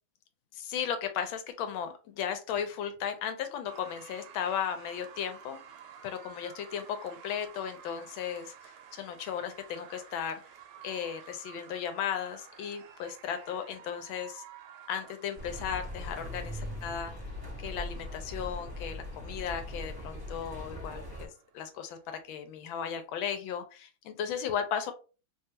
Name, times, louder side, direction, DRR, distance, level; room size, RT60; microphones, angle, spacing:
voice 1, 0.5-5.6 6.0-10.4 10.8-14.4 14.9-17.1 17.6-24.9, left 8 dB, 80° left, 8 dB, 1.3 m, -36 dB
sound 1, 3.7-23.3, right 8 dB, 85° right, 1.4 m, -53 dB
sound 2, 15.4-21.3, left 1 dB, 15° right, 0.8 m, -40 dB
3.3 x 2.3 x 2.7 m, 0.34 s
omnidirectional pair, 2.2 m